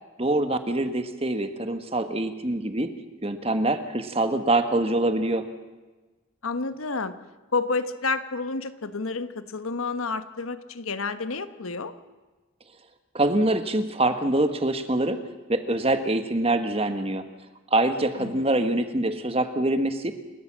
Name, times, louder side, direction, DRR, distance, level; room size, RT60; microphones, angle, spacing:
voice 1, 0.2-2.9 3.2-5.4 13.1-15.2 15.5-17.2 17.7-20.1, right 2 dB, 30° right, 9 dB, 1.4 m, -24 dB
voice 2, 6.4-7.1 7.5-11.9 18.2-18.4, left 3 dB, 85° left, 11 dB, 1.2 m, -30 dB
28.5 x 13.5 x 7.5 m, 1.3 s
head